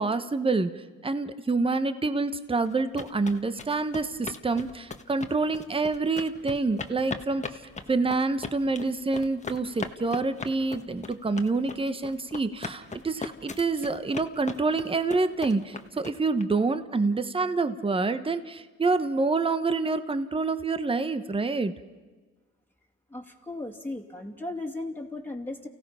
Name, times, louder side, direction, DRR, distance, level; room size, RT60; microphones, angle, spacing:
voice 1, 0.0-7.6 7.9-21.7, right 3 dB, 20° right, 11 dB, 1.1 m, -27 dB
sound 1, 2.7-16.4, left 4 dB, 25° left, 1.4 m, -39 dB
voice 2, 23.1-25.7, left 2 dB, 5° left, 1 dB, 2.6 m, -36 dB
29.5 x 16.5 x 5.7 m, 1.3 s
cardioid pair, 90°, 30 cm